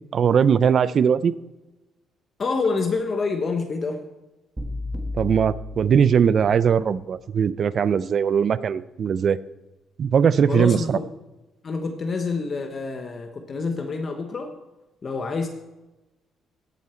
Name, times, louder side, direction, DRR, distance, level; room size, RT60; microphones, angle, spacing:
voice 1, 0.1-1.3 5.2-9.4 10.0-11.0, right 7 dB, 40° right, 17 dB, 0.4 m, -20 dB
voice 2, 2.4-4.0 10.5-11.0 11.6-14.6 15.0-15.5, left 4 dB, 30° left, 5 dB, 1.0 m, -27 dB
sound 1, 4.6-6.7, left 2 dB, 15° right, 1.3 m, -33 dB
17.5 x 8.2 x 4.4 m, 1.1 s
cardioid pair, 155°, 0 cm